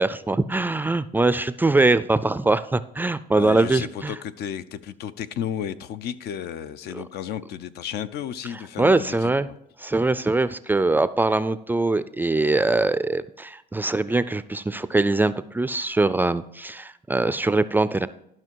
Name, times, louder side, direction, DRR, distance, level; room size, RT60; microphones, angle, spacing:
voice 1, 0.0-4.1 6.9-7.0 8.8-9.5 9.8-18.1, right 2 dB, 10° right, 0.3 m, -22 dB
voice 2, 3.3-9.6, left 9 dB, 75° left, 0.6 m, -33 dB
12.0 x 5.9 x 4.6 m
cardioid pair, 110°, 17 cm